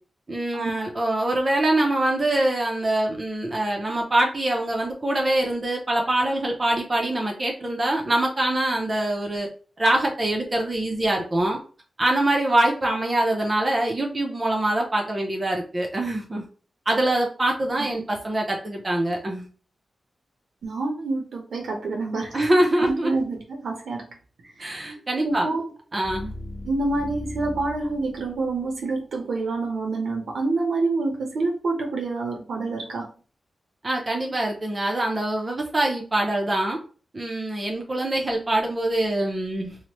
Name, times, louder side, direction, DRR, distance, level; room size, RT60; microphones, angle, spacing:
voice 1, 0.3-9.5 9.8-11.6 12.0-16.5 16.9-19.5 22.3-23.1 24.6-25.5 25.9-26.3 33.8-36.8 37.1-39.8, right 1 dB, 25° right, 0 dB, 0.5 m, -24 dB
voice 2, 20.6-22.4 22.8-24.1 25.2-25.6 26.6-33.1, right 3 dB, 80° right, 1 dB, 0.6 m, -27 dB
sound 1, 24.8-28.9, left 1 dB, 45° left, 1.0 m, -39 dB
3.0 x 2.0 x 2.8 m, 0.39 s
wide cardioid pair, 155°, 0 cm